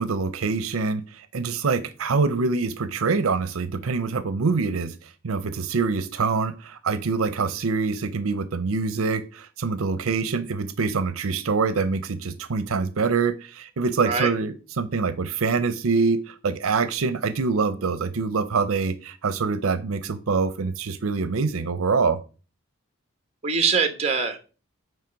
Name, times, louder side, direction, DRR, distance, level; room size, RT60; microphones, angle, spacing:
voice 1, 0.0-4.9 5.2-22.2, right 4 dB, 85° right, 0.6 m, -25 dB
voice 2, 23.4-24.4, right 5 dB, 30° right, 1.1 m, -23 dB
9.1 x 3.2 x 5.1 m
head